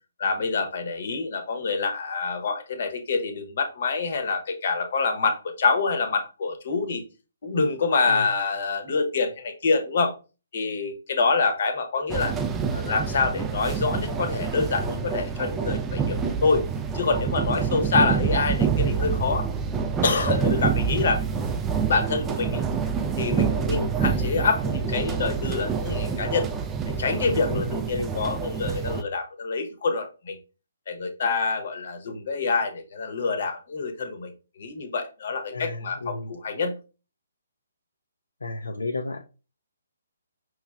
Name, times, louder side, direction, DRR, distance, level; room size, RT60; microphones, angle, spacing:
voice 1, 0.2-7.0 7.4-10.1 10.5-12.3 12.7-16.6 16.9-19.5 20.0-21.2 21.9-22.6 23.2-26.5 26.9-30.4 30.9-36.8, left 4 dB, 50° left, 7 dB, 0.9 m, -26 dB
sound 1, 12.1-29.0, right 6 dB, 10° right, 0.4 m, -27 dB
voice 2, 27.5-28.2 35.5-36.3 38.4-39.3, left 3 dB, 70° left, 5 dB, 0.4 m, -32 dB
5.3 x 3.0 x 2.4 m, 0.32 s
figure-of-eight pair, 135°, 0 cm